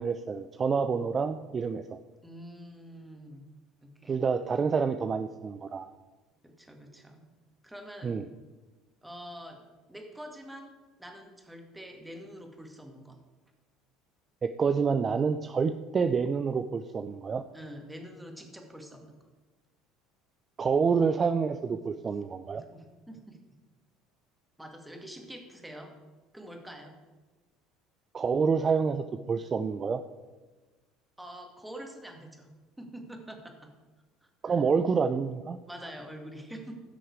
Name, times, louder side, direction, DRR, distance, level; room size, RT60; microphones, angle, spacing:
voice 1, 0.0-2.0 4.1-5.9 8.0-8.2 14.4-17.4 20.6-22.6 28.1-30.0 34.4-35.6, right 5 dB, 35° right, 9 dB, 0.5 m, -28 dB
voice 2, 2.2-3.5 3.8-4.2 6.4-7.3 7.6-8.2 9.0-13.2 17.5-19.2 22.5-23.4 24.6-25.9 26.3-27.0 31.2-32.5 32.8-33.7 34.4-34.6 35.7-36.8, equal, 5° right, 3 dB, 2.2 m, -45 dB
15.5 x 6.3 x 4.8 m, 1.3 s
hypercardioid pair, 75°, 0 cm